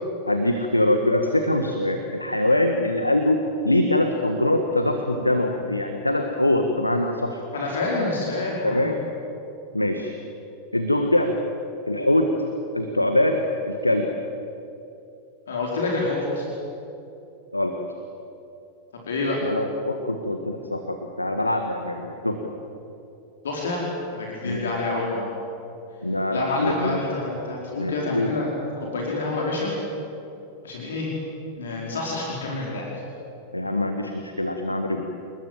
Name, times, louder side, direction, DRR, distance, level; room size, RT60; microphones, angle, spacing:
voice 1, 0.3-7.4 8.6-9.0 9.7-10.1 10.7-11.3 11.9-12.3 12.7-14.1 17.5-17.7 19.4-22.4 24.4-24.7 26.0-27.0 27.8-28.3 33.5-35.0, left 1 dB, 85° left, 5 dB, 1.6 m, -23 dB
voice 2, 7.5-8.9 15.5-16.5 19.1-19.4 23.4-23.9 24.1-25.3 26.3-28.5 28.8-29.7 30.6-31.1 31.6-32.9, left 2 dB, 65° left, -2 dB, 4.8 m, -27 dB
29.0 x 20.5 x 7.7 m, 2.8 s
figure-of-eight pair, 90°, 0 cm